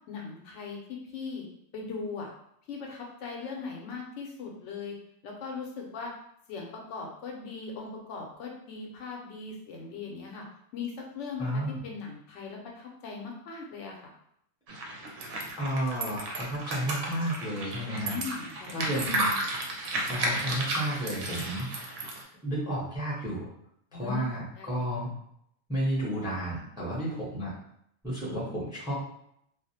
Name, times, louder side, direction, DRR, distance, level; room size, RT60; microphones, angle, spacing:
voice 1, 0.1-1.5 1.7-2.3 2.7-5.0 5.2-6.1 6.5-10.4 10.7-14.1 18.0-19.1 23.9-24.2 24.6-24.8 26.9-27.5, left 4 dB, 80° left, 0 dB, 0.9 m, -39 dB
voice 2, 11.4-11.8 15.6-18.2 18.7-19.3 20.1-21.7 22.4-23.5 23.9-25.1 25.7-27.5 28.0-28.9, equal, 5° right, -7 dB, 0.5 m, -32 dB
sound 1, 14.7-22.2, right 2 dB, 85° right, 0.9 m, -33 dB
2.4 x 2.0 x 2.7 m, 0.73 s
omnidirectional pair, 1.2 m